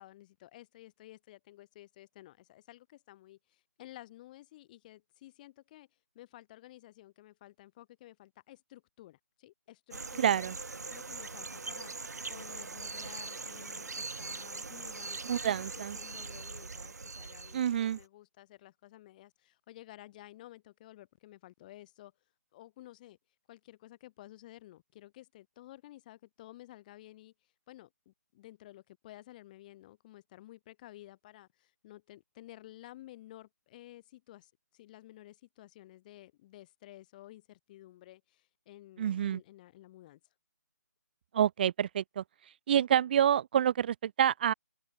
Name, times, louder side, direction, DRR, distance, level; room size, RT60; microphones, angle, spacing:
voice 1, 0.0-5.9 6.1-10.5 10.9-22.1 22.5-23.2 23.5-27.3 27.7-40.2, left 15 dB, 30° left, 2.3 m, -53 dB
sound 1, 9.9-18.0, right 4 dB, 70° right, 2.8 m, -42 dB
voice 2, 10.2-10.5 15.3-16.0 17.5-18.0 39.0-39.4 41.3-42.2 42.7-44.5, right 9 dB, 35° right, 0.5 m, -27 dB
figure-of-eight pair, 145°, 9 cm